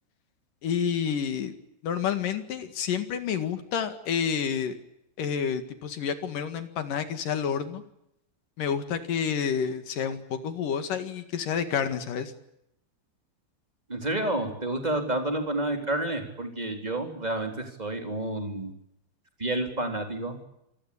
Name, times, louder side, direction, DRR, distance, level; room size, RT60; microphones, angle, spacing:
voice 1, 0.6-1.5 1.8-4.8 5.2-7.8 8.6-12.3, left 7 dB, 55° left, 9 dB, 3.0 m, -29 dB
voice 2, 13.9-18.7 19.4-20.4, right 1 dB, 10° right, 5 dB, 2.9 m, -30 dB
27.5 x 19.5 x 8.6 m, 0.81 s
omnidirectional pair, 5.4 m